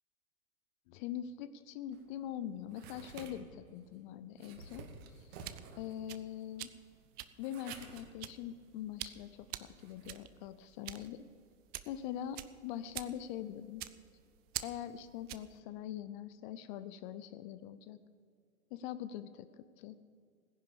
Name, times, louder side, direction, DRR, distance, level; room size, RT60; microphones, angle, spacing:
voice 1, 0.9-4.9 5.2-6.7 7.4-11.3 11.9-13.8 14.6-18.0 18.7-19.5 19.8-20.0, left 10 dB, 35° left, 13 dB, 0.7 m, -43 dB
sound 1, 1.9-10.1, right 5 dB, 45° right, 2.2 m, -53 dB
sound 2, 5.1-15.6, right 15 dB, 25° right, 0.5 m, -47 dB
17.0 x 10.5 x 6.9 m, 2.2 s
figure-of-eight pair, 110°, 42 cm